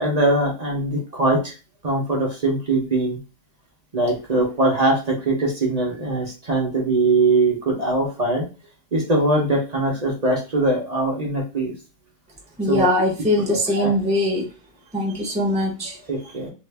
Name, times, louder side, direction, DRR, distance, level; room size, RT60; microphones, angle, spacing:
voice 1, 0.0-1.5 1.8-3.2 3.9-8.5 8.9-11.7 12.7-12.9 13.7-13.9 16.1-16.5, right 2 dB, 45° right, -2 dB, 0.5 m, -21 dB
voice 2, 12.6-14.5 14.9-16.0, left 1 dB, 5° right, -3 dB, 0.7 m, -21 dB
2.7 x 2.5 x 3.3 m, 0.32 s
omnidirectional pair, 1.7 m